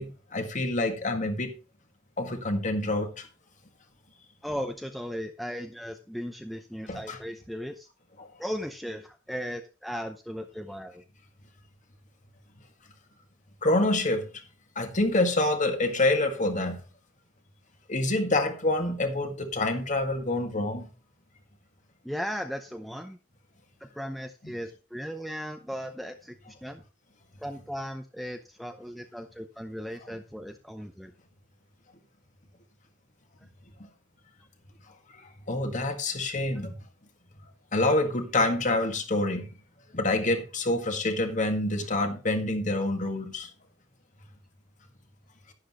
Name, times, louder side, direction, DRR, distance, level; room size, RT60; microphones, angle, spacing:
voice 1, 0.0-1.5 2.2-3.2 6.9-7.2 13.6-14.3 14.8-16.8 17.9-20.9 35.5-36.7 37.7-39.5 39.9-43.5, left 2 dB, 40° left, 1.9 m, -27 dB
voice 2, 4.4-7.9 8.4-11.0 22.0-23.2 23.8-26.8 27.4-31.1, equal, ahead, 0.7 m, -37 dB
11.5 x 10.5 x 3.0 m
head